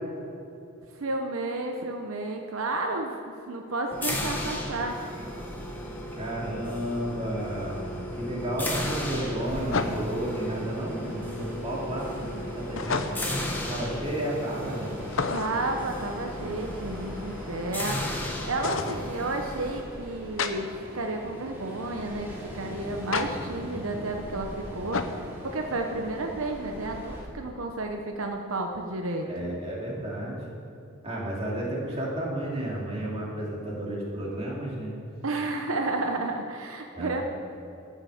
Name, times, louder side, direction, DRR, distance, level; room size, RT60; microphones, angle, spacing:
voice 1, 0.9-5.0 15.3-18.0 18.4-25.1 25.4-29.3 35.2-37.2, right 2 dB, 80° right, 3 dB, 0.9 m, -32 dB
sound 1, 3.9-19.8, left 1 dB, 10° left, 1.2 m, -35 dB
voice 2, 6.1-13.1 13.7-14.9 29.2-30.4 31.0-35.0 36.9-37.2, right 1 dB, 30° right, -4 dB, 2.8 m, -32 dB
sound 2, 7.1-7.2 9.7-10.3 12.8-13.4 15.1-15.7 18.6-19.0 20.4-20.5 23.1-23.3 24.9-25.2, left 4 dB, 70° left, 0.7 m, -30 dB
Ocean, 8.8-27.2, equal, 10° right, 2.4 m, -42 dB
13.5 x 6.8 x 7.1 m, 2.8 s
head